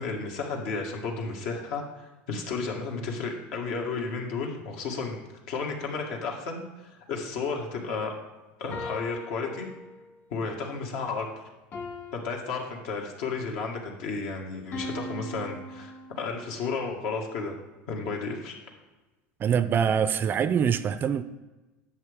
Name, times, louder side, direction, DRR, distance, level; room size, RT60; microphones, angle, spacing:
voice 1, 0.0-1.8 2.3-8.1 8.6-9.7 10.3-11.3 12.1-17.5 17.9-18.6, left 4 dB, 70° left, 1 dB, 1.9 m, -33 dB
sound 1, 8.7-10.3 11.7-13.4 14.7-16.6, left 2 dB, 40° left, 2.0 m, -40 dB
voice 2, 19.4-21.2, right 7 dB, 30° right, 13 dB, 0.4 m, -24 dB
10.5 x 7.4 x 3.6 m, 1.1 s
supercardioid pair, 120°, 6 cm